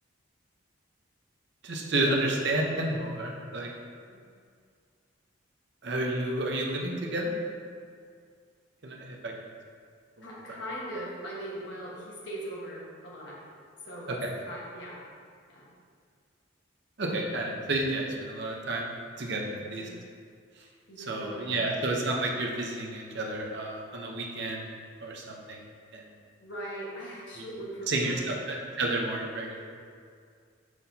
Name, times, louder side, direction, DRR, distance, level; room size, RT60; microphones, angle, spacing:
voice 1, 1.6-3.7 5.8-7.4 8.8-9.3 10.5-10.6 14.2-14.3 17.0-19.9 21.1-24.7 25.0-25.6 25.9-26.0 27.4-27.5 27.9-29.7, right 2 dB, 55° right, 0 dB, 0.7 m, -31 dB
voice 2, 10.2-13.4 13.8-15.0 15.5-15.7 19.4-19.9 20.9-21.8 26.4-28.2, right 1 dB, 60° left, -5 dB, 1.4 m, -40 dB
6.1 x 5.8 x 2.8 m, 2.2 s
head